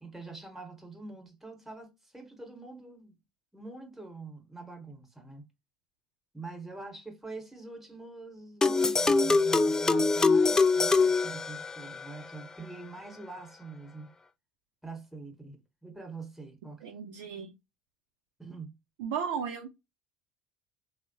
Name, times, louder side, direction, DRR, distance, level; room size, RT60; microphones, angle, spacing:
voice 1, 0.0-3.2 3.5-5.4 6.3-14.1 14.8-16.8 18.4-18.8, right 3 dB, 5° right, 1.0 m, -44 dB
sound 1, 8.6-12.1, left 4 dB, 15° left, 0.3 m, -24 dB
voice 2, 16.8-17.5 19.0-19.7, right 7 dB, 80° right, 0.6 m, -35 dB
3.2 x 2.1 x 2.6 m
hypercardioid pair, 80°, 4 cm